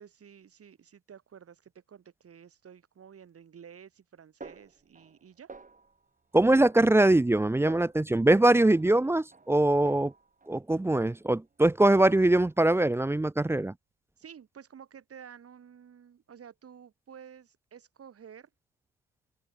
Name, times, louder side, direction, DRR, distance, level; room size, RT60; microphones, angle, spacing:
voice 1, 0.0-5.5 14.2-18.5, right 8 dB, 45° right, 5.1 m, -51 dB
Snare drum, 4.4-5.2 5.5-6.1 6.6-7.4 7.7-8.1 8.5-10.6 10.9-11.5 11.9-12.6, right 4 dB, 25° right, 3.5 m, -51 dB
voice 2, 6.3-10.1 10.5-13.7, right 1 dB, 10° right, 0.6 m, -22 dB
open air
hypercardioid pair, 50°, 33 cm